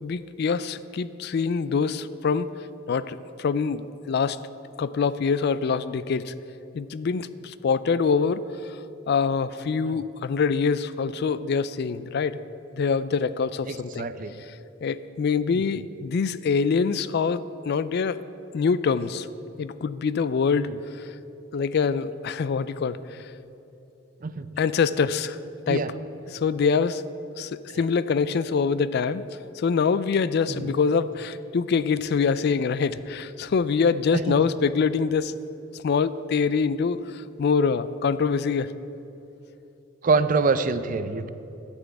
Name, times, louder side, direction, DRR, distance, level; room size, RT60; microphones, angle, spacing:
voice 1, 0.0-2.5 2.9-3.8 4.1-4.4 4.8-6.3 6.8-8.4 9.1-12.4 12.8-14.1 14.8-18.2 18.5-19.3 19.6-20.7 21.5-23.0 24.6-25.4 25.7-25.8 26.3-27.0 27.4-27.5 27.8-29.2 29.6-35.3 35.8-37.0 37.4-38.7, left 5 dB, 50° left, 15 dB, 0.3 m, -24 dB
voice 2, 13.7-14.3 15.5-15.6 24.2-24.5 25.7-25.9 30.5-30.7 34.1-34.5 40.0-41.3, right 4 dB, 40° right, 12 dB, 0.4 m, -25 dB
11.5 x 6.1 x 8.9 m, 2.9 s
head